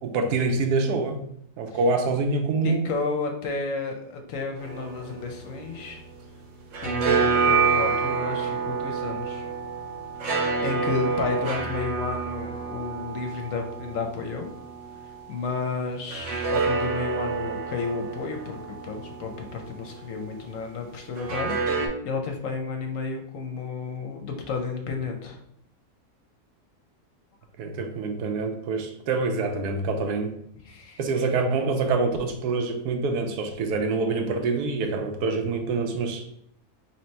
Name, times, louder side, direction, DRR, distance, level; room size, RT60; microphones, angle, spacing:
voice 1, 0.0-1.2 1.6-2.8 27.6-30.4 31.0-36.3, right 3 dB, 85° right, 6 dB, 1.1 m, -26 dB
voice 2, 2.6-6.0 6.8-9.5 10.3-14.5 15.3-25.4 30.6-31.0, left 4 dB, 65° left, 3 dB, 0.9 m, -32 dB
sound 1, 4.6-6.3 6.6-15.2 16.1-20.2 21.2-21.9, right 5 dB, 60° right, 1.0 m, -28 dB
3.1 x 2.9 x 4.3 m, 0.71 s
omnidirectional pair, 1.7 m